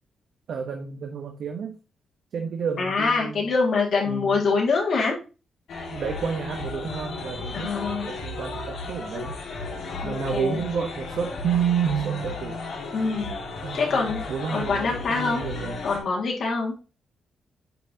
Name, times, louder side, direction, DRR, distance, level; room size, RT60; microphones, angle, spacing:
voice 1, 0.5-1.8 2.3-3.5 4.1-4.4 5.9-7.7 8.0-9.3 10.0-12.6 13.6-15.8, right 7 dB, 60° right, 3 dB, 0.9 m, -30 dB
voice 2, 2.8-5.2 7.5-8.1 10.0-10.6 12.9-13.3 13.7-14.2 14.5-15.4 15.8-16.8, left 4 dB, 55° left, -1 dB, 1.9 m, -24 dB
sound 1, 5.7-16.0, left 3 dB, 70° left, 2.0 m, -34 dB
9.3 x 4.5 x 2.7 m, 0.31 s
wide cardioid pair, 170°, 0 cm